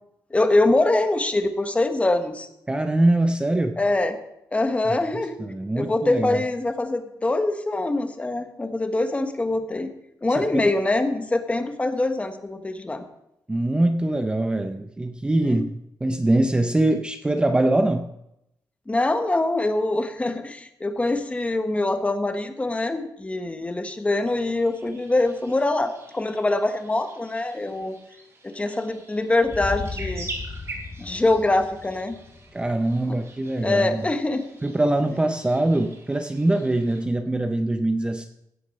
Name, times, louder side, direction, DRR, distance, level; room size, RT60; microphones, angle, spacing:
voice 1, 0.3-2.5 3.8-4.2 4.5-5.4 5.7-9.9 10.2-13.0 15.5-15.6 18.9-28.0 28.4-30.3 31.0-32.2 33.6-34.4, left 2 dB, 15° left, 7 dB, 1.1 m, -24 dB
voice 2, 2.7-3.8 4.9-5.0 5.4-6.4 10.4-10.6 13.5-15.7 16.0-18.1 32.5-34.0 34.6-38.3, right 1 dB, 15° right, 6 dB, 0.6 m, -23 dB
sound 1, 24.3-37.0, right 2 dB, 40° right, 3.2 m, -44 dB
sound 2, 29.4-33.5, left 3 dB, 35° left, 3.9 m, -37 dB
16.5 x 6.6 x 5.4 m, 0.83 s
wide cardioid pair, 125°, 7 cm